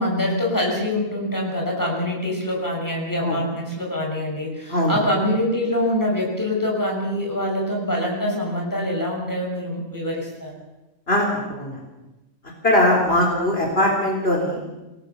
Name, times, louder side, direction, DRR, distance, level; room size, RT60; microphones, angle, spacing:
voice 1, 0.0-10.6, left 1 dB, 15° left, -2 dB, 6.7 m, -25 dB
voice 2, 12.6-14.6, left 1 dB, 55° left, -1 dB, 4.2 m, -20 dB
27.5 x 18.0 x 7.3 m, 1.0 s
omnidirectional pair, 1.3 m